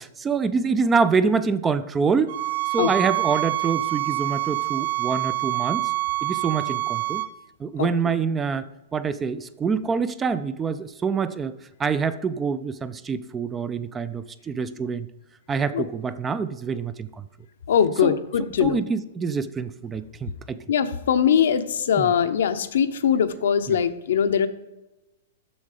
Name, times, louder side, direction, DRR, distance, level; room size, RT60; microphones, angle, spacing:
voice 1, 0.0-2.4 2.7-5.9 6.2-7.2 7.6-11.5 11.8-15.1 15.5-17.2 18.0-18.1 18.6-20.6 22.0-22.1 23.7-23.8, right 5 dB, 15° right, 14 dB, 0.3 m, -26 dB
sound 1, 2.3-7.3, right 20 dB, 65° right, 0.6 m, -26 dB
voice 2, 17.7-18.8 20.7-24.5, left 8 dB, 75° left, 10 dB, 0.7 m, -21 dB
7.1 x 6.5 x 4.9 m, 1.0 s
hypercardioid pair, 150°, 0 cm